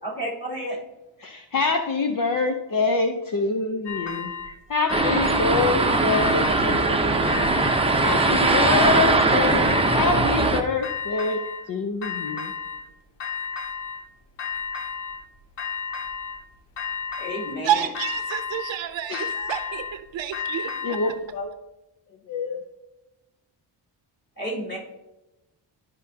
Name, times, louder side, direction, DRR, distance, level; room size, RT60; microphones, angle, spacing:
voice 1, 0.0-0.8 17.2-17.9 24.4-24.8, equal, 20° left, -5 dB, 3.0 m, -31 dB
voice 2, 1.2-7.5 8.0-11.4 11.7-12.5 19.1-19.3 20.8-21.5 22.3-22.6, left 4 dB, 45° left, 5 dB, 0.7 m, -26 dB
sound 1, 3.9-4.6 4.9-5.7 6.1-6.9 7.3-8.1 8.5-9.3 9.6-10.5 10.8-11.7 12.0-12.9 13.2-14.1 14.4-15.2 15.6-16.4 16.8-17.6 17.9-18.8 19.1-21.2, left 6 dB, 65° left, 1.0 m, -33 dB
sound 2, 4.9-10.6, right 3 dB, 15° right, 0.7 m, -20 dB
voice 3, 17.6-21.0, right 10 dB, 75° right, 10 dB, 0.7 m, -29 dB
12.5 x 5.3 x 2.8 m, 0.96 s
wide cardioid pair, 125°, 46 cm